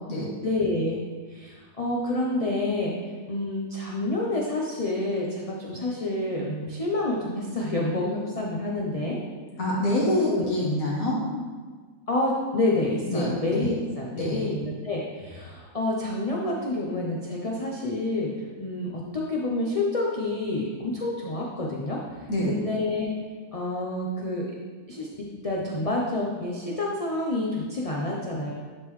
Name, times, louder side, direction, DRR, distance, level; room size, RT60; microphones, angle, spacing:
voice 1, 0.4-1.0 1.3-2.9 3.3-9.2 10.3-10.5 12.1-18.3 18.6-22.0 22.5-23.1 23.5-24.5 24.9-28.5, left 2 dB, 45° left, -3 dB, 0.5 m, -28 dB
voice 2, 9.6-11.2 13.1-13.7 14.1-14.4 22.3-22.5, left 1 dB, 75° left, -6 dB, 1.9 m, -26 dB
10.5 x 3.8 x 3.1 m, 1.5 s
omnidirectional pair, 1.5 m